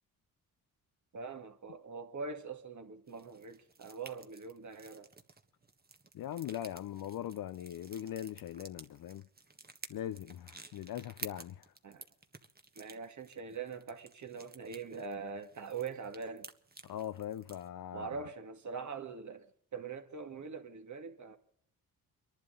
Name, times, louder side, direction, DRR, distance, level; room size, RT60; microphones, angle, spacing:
voice 1, 1.1-5.1 11.8-12.0 12.8-16.5 17.9-21.4, right 5 dB, 50° right, 2.2 m, -43 dB
sound 1, 3.1-17.7, right 3 dB, 25° right, 1.5 m, -53 dB
voice 2, 6.1-9.2 9.9-11.7 16.8-18.1, left 11 dB, 60° left, 0.7 m, -40 dB
24.0 x 11.5 x 3.9 m
cardioid pair, 70°, 38 cm